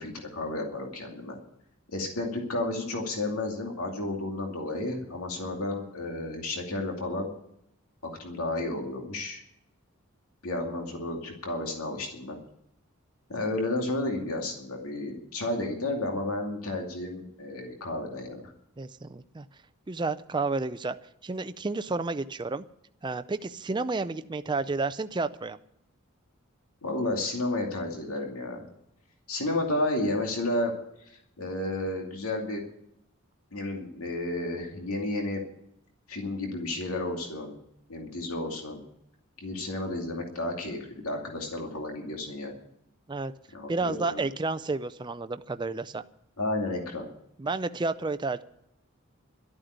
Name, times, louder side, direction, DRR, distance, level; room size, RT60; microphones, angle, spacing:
voice 1, 0.0-1.4 1.9-7.3 8.2-9.4 10.4-12.4 13.3-18.5 26.8-28.6 29.3-30.7 31.1-32.6 33.5-35.4 36.1-37.5 37.9-38.8 39.4-42.5 43.5-44.2 46.4-47.1, left 2 dB, 90° left, 1 dB, 2.5 m, -32 dB
voice 2, 18.8-19.5 19.9-21.0 21.2-22.6 23.0-25.6 43.1-43.3 43.7-46.0 47.4-48.4, right 3 dB, 20° right, 10 dB, 0.4 m, -31 dB
12.5 x 8.9 x 9.3 m, 0.76 s
head